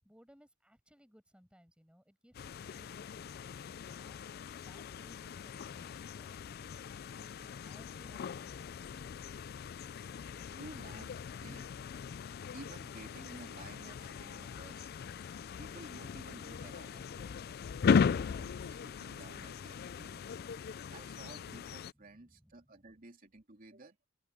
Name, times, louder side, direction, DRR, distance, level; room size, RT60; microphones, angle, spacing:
voice 1, 0.0-4.4 4.6-9.4 21.9-22.5, equal, 5° right, 6.7 m, -64 dB
sound 1, 2.3-21.9, left 6 dB, 50° left, 0.3 m, -38 dB
voice 2, 10.5-11.1 11.4-11.8 12.5-15.0 15.6-17.4 18.1-20.2 20.9-24.0, right 2 dB, 45° right, 3.0 m, -53 dB
open air
head